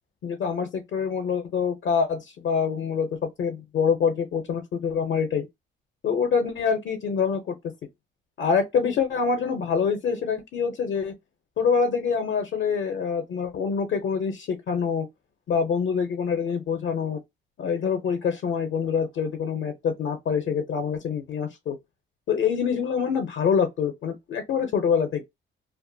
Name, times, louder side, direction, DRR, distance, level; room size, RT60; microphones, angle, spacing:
voice 1, 0.2-5.5 6.0-7.5 8.4-11.1 11.6-15.1 15.5-17.2 17.6-21.8 22.3-25.2, left 6 dB, 65° left, 0.6 m, -25 dB
2.4 x 2.2 x 2.6 m
cardioid pair, 90°, 20 cm